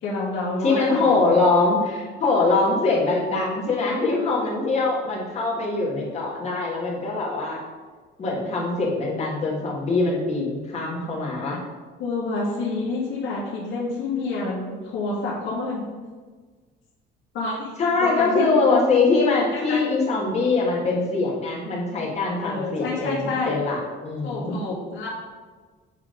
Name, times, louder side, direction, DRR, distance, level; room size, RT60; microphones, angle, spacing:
voice 1, 0.0-1.3 12.0-15.8 17.3-17.7 18.0-18.6 19.5-19.8 22.4-23.6 24.2-25.1, left 3 dB, 70° left, -7 dB, 1.9 m, -28 dB
voice 2, 0.6-7.6 8.2-11.6 17.8-24.6, left 3 dB, 35° left, -4 dB, 2.0 m, -23 dB
8.1 x 3.6 x 5.1 m, 1.4 s
cardioid pair, 145°, 20 cm